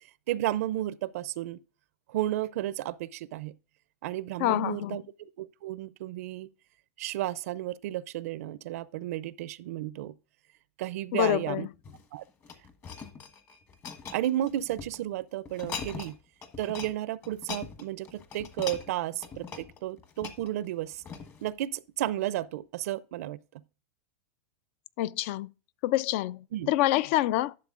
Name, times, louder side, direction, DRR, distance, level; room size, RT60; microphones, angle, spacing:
voice 1, 0.3-1.6 2.1-3.5 4.0-5.0 5.4-6.5 7.0-10.2 10.8-11.7 12.1-12.2 14.1-16.1 16.6-21.0 21.4-23.4 26.5-26.7, right 13 dB, 70° right, 0.5 m, -33 dB
voice 2, 4.4-5.0 11.1-11.7 25.0-25.5 25.8-27.6, left 15 dB, 55° left, 0.4 m, -27 dB
sound 1, 11.7-15.0 15.5-16.2 16.4-16.9 17.2-21.5 22.1-22.2, left 6 dB, 30° left, 1.3 m, -41 dB
11.5 x 6.7 x 2.4 m
supercardioid pair, 135°, 8 cm